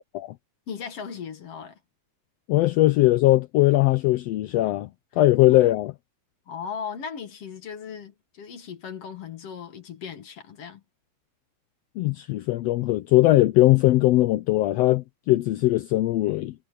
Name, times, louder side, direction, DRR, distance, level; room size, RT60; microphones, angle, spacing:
voice 1, 0.7-1.8 5.5-5.6 6.5-10.8, left 6 dB, 55° left, 2.4 m, -37 dB
voice 2, 2.5-4.9 5.2-5.9 12.0-16.5, left 17 dB, 80° left, 1.5 m, -20 dB
omnidirectional pair, 3.6 m